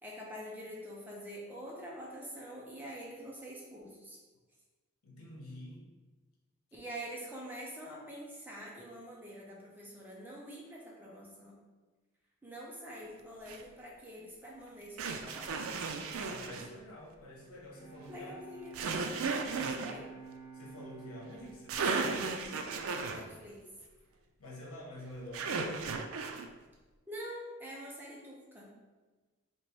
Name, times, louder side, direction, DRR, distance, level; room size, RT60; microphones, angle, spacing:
voice 1, 0.0-4.2 6.7-11.6 12.4-15.6 18.1-18.8 19.8-20.0 23.1-23.6 27.1-28.7, equal, 10° right, -4 dB, 0.6 m, -46 dB
voice 2, 5.0-5.8 16.2-18.3 20.5-22.2 24.4-25.8, left 1 dB, 90° left, -3 dB, 1.1 m, -48 dB
sound 1, 13.5-13.6 15.0-16.7 18.7-19.9 21.4-21.5 21.7-23.2 25.3-26.5, right 4 dB, 75° right, 0.4 m, -35 dB
Bowed string instrument, 17.6-23.2, right 4 dB, 35° left, 1.3 m, -52 dB
3.0 x 3.0 x 4.5 m, 1.3 s
head